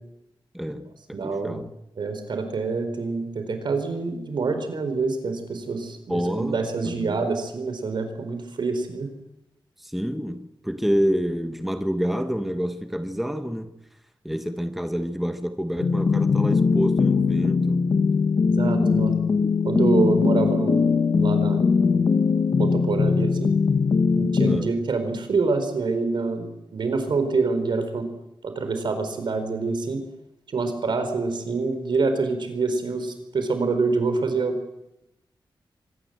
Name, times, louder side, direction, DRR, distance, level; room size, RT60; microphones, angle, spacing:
voice 1, 0.5-1.7 6.1-6.6 6.8-7.2 9.8-13.7 14.2-17.8 18.6-18.9 19.3-19.7 24.5-24.7, equal, ahead, 7 dB, 1.3 m, -28 dB
voice 2, 1.1-1.6 2.0-9.1 18.6-19.1 19.6-20.8 21.1-21.6 21.9-22.0 22.6-23.5 24.1-28.1 28.4-30.0 30.5-34.6, right 4 dB, 70° right, 8 dB, 4.4 m, -26 dB
sound 1, 15.8-24.6, left 5 dB, 55° left, 1.6 m, -21 dB
25.0 x 19.5 x 8.0 m, 0.88 s
wide cardioid pair, 160°, 8 cm